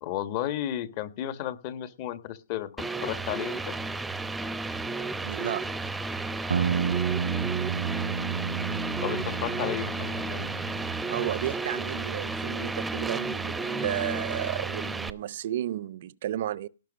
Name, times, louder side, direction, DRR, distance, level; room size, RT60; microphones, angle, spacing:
voice 1, 0.0-2.7 3.0-3.7 9.0-10.5, left 12 dB, 40° left, 1.4 m, -33 dB
sound 1, 2.8-15.1, right 3 dB, 5° right, 0.7 m, -33 dB
voice 2, 5.2-5.6 11.1-16.7, right 12 dB, 55° right, 0.6 m, -32 dB
sound 2, 6.5-11.2, right 7 dB, 85° right, 0.9 m, -31 dB
17.5 x 6.0 x 5.2 m
hypercardioid pair, 140°, 0 cm